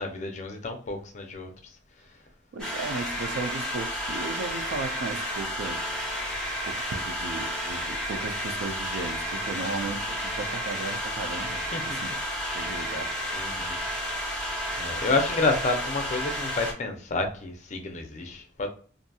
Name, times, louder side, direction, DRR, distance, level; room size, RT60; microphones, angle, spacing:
voice 1, 0.0-1.5 9.5-9.9 11.7-12.1 13.3-13.8 14.7-18.7, left 3 dB, 40° left, 0.5 m, -30 dB
voice 2, 2.5-5.8 6.7-12.1 12.5-13.1, right 3 dB, 85° right, 0.4 m, -35 dB
sound 1, 2.6-16.7, equal, 5° left, 0.8 m, -31 dB
2.7 x 2.5 x 2.2 m
head